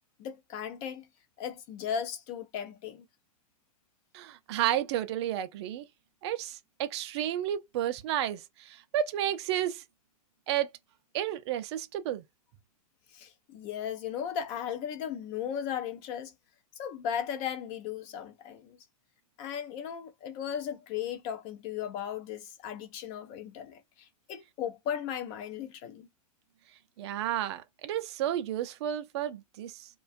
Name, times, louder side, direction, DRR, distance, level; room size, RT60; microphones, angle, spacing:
voice 1, 0.2-1.1 1.4-3.0 13.1-16.3 16.8-18.8 19.4-26.1, left 8 dB, 40° left, 0.5 m, -36 dB
voice 2, 4.1-5.8 6.2-9.8 10.5-10.7 11.1-12.2 27.0-29.9, right 11 dB, 50° right, 0.5 m, -32 dB
2.4 x 2.2 x 2.5 m
hypercardioid pair, 115°, 18 cm